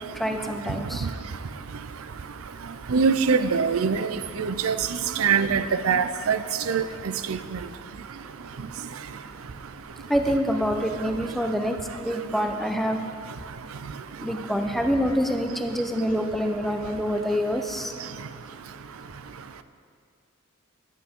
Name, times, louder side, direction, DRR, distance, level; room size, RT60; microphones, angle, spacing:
voice 1, 0.1-1.1 10.1-11.8 12.0-13.0 14.2-17.9, equal, ahead, 4 dB, 0.7 m, -26 dB
voice 2, 2.9-4.1 4.4-4.8 5.2-6.4 6.7-6.8 7.3-7.4, right 5 dB, 90° right, 11 dB, 0.5 m, -22 dB
18.5 x 8.4 x 3.7 m, 2.1 s
head